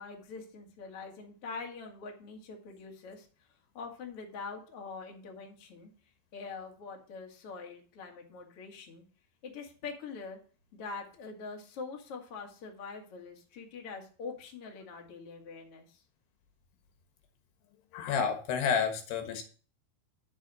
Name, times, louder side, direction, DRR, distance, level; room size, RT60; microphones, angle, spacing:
voice 1, 0.0-3.3 3.7-5.9 6.3-9.0 9.4-10.4 10.7-16.0, left 4 dB, 40° left, 1 dB, 2.6 m, -44 dB
voice 2, 17.9-19.4, left 6 dB, 75° left, 5 dB, 3.4 m, -30 dB
13.0 x 4.7 x 6.3 m, 0.38 s
omnidirectional pair, 4.8 m